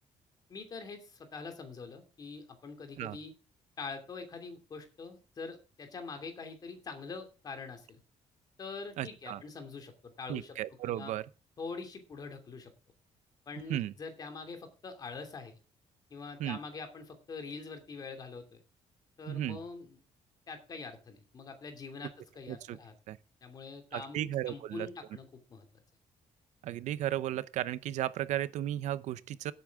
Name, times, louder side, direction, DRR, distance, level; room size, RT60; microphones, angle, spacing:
voice 1, 0.5-3.3 3.8-8.0 8.6-10.5 10.9-11.1 11.6-12.7 13.5-15.6 16.1-18.6 19.2-20.0 20.5-22.9 23.4-25.7, left 4 dB, 35° left, 2.6 m, -44 dB
voice 2, 9.0-9.4 10.3-11.2 13.7-13.9 16.4-16.6 19.3-19.6 22.5-22.8 23.1-23.2 23.9-24.9 26.6-29.5, right 12 dB, 80° right, 0.8 m, -34 dB
17.0 x 8.7 x 3.6 m
cardioid pair, 170°, 12 cm